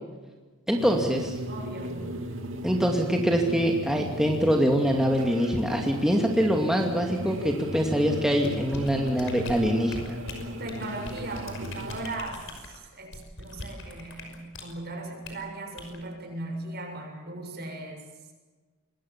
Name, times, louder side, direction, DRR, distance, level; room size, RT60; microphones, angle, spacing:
voice 1, 0.7-1.4 2.6-10.2, equal, 5° right, 1 dB, 2.5 m, -24 dB
sound 1, 0.8-12.1, equal, 65° right, 3.4 m, -36 dB
voice 2, 1.5-2.0 10.6-18.1, right 2 dB, 50° right, 3 dB, 7.0 m, -38 dB
sound 2, 8.4-14.7 15.2-15.4 15.8-16.0, left 3 dB, 65° left, 5.7 m, -42 dB
26.5 x 22.0 x 7.3 m, 1.3 s
head